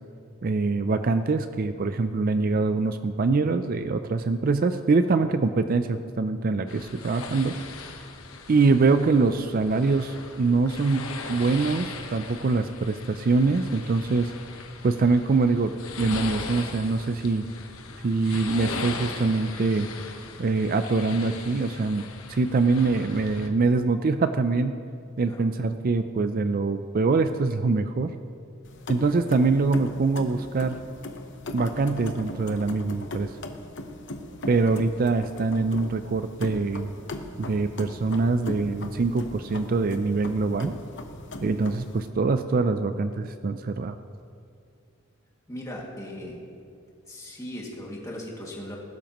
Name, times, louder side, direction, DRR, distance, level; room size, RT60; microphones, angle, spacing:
voice 1, 0.4-7.6 8.5-14.3 14.8-15.7 16.0-17.5 18.0-19.9 20.4-22.0 22.3-24.7 25.2-28.2 28.9-30.8 31.5-33.3 34.5-36.9 37.4-40.8 41.4-44.0, right 3 dB, 40° right, 10 dB, 0.4 m, -24 dB
sound 1, 6.7-23.5, left 4 dB, 80° left, 1.2 m, -39 dB
sound 2, 28.6-42.1, left 1 dB, 55° left, 0.9 m, -39 dB
voice 2, 45.5-46.4 47.1-48.8, left 1 dB, 15° left, -3 dB, 2.1 m, -38 dB
20.0 x 12.0 x 3.0 m, 2.4 s
head